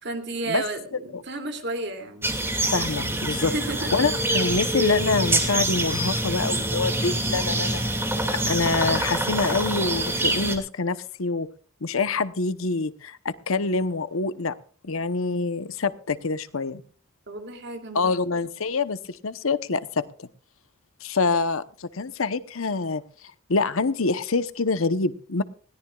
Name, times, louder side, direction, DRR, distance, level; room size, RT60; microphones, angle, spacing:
voice 1, 0.0-2.3 3.4-3.9 17.3-18.1, right 2 dB, 55° right, 6 dB, 2.7 m, -32 dB
sound 1, 2.2-10.6, right 1 dB, 10° right, 2.2 m, -25 dB
voice 2, 2.7-3.5 3.9-7.8 8.5-11.5 11.8-14.5 14.8-16.8 17.9-20.3 21.0-23.0 23.5-25.4, left 3 dB, 75° left, 14 dB, 0.9 m, -26 dB
20.5 x 17.0 x 2.4 m, 0.43 s
head